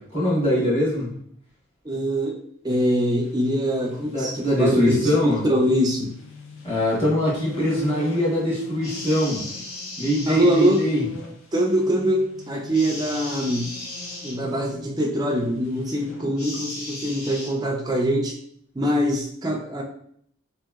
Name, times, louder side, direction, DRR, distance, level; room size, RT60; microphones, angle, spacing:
voice 1, 0.1-1.1 4.0-5.4 6.6-9.4 10.0-11.1, equal, 25° left, -7 dB, 1.2 m, -22 dB
voice 2, 1.8-2.4 2.6-6.1 10.3-10.8 11.5-13.7 14.2-18.4 18.8-19.8, equal, 20° right, 1 dB, 0.3 m, -23 dB
sound 1, 3.2-16.3, left 1 dB, 60° left, 0.6 m, -43 dB
sound 2, 8.8-11.0 12.7-14.4 16.4-17.5, left 2 dB, 85° left, 1.4 m, -36 dB
2.9 x 2.7 x 2.3 m, 0.65 s
head